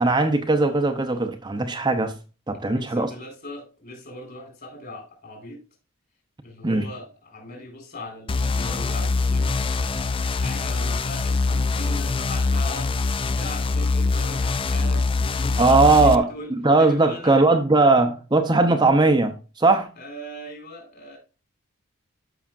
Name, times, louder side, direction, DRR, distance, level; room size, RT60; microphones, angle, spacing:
voice 1, 0.0-2.1 2.5-3.1 6.6-6.9 15.6-19.9, right 3 dB, 20° right, 0.7 m, -19 dB
voice 2, 2.7-5.6 6.4-9.5 10.3-12.9 13.3-16.5 16.8-17.4 20.0-21.2, left 1 dB, 50° left, 4.2 m, -39 dB
sound 1, 8.3-16.2, left 3 dB, 25° left, 0.4 m, -24 dB
13.0 x 5.7 x 2.5 m
head